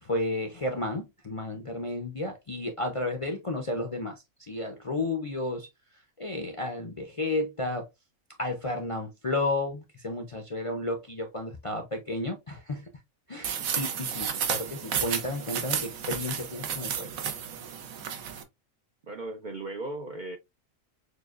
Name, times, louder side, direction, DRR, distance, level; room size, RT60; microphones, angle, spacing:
voice 1, 0.0-5.7 6.2-7.9 8.4-12.9 13.3-17.1, left 2 dB, 40° left, 0.4 m, -32 dB
sound 1, 13.4-18.4, right 7 dB, 85° right, 1.2 m, -32 dB
voice 2, 19.1-20.4, right 2 dB, 60° right, 0.5 m, -36 dB
6.7 x 2.3 x 2.4 m
omnidirectional pair, 1.4 m